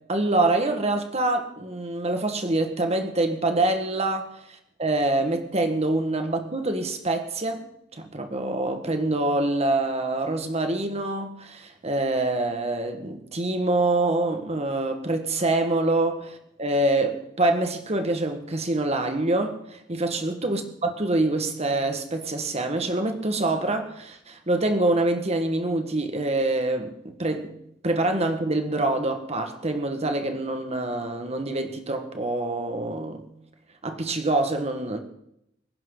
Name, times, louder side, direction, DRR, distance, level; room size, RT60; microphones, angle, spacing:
voice 1, 0.1-27.5 27.8-33.3 33.8-35.0, right 2 dB, 35° right, 6 dB, 1.7 m, -25 dB
25.5 x 11.0 x 4.0 m, 0.78 s
head